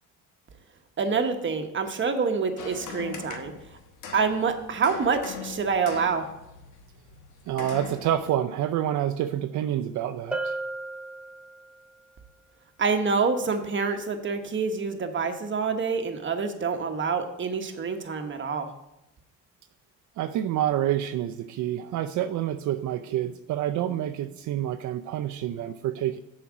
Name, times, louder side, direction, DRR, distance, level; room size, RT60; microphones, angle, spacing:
voice 1, 1.0-3.5 4.1-6.3 12.8-18.7, right 5 dB, 40° right, 5 dB, 1.1 m, -27 dB
sound 1, 2.6-8.3, left 6 dB, 85° left, 1.2 m, -41 dB
voice 2, 7.5-10.6 20.2-26.2, right 11 dB, 75° right, 8 dB, 0.5 m, -28 dB
Bell, 10.3-11.9, right 2 dB, 5° right, 0.7 m, -34 dB
7.0 x 5.0 x 6.1 m, 0.90 s
cardioid pair, 90°, 30 cm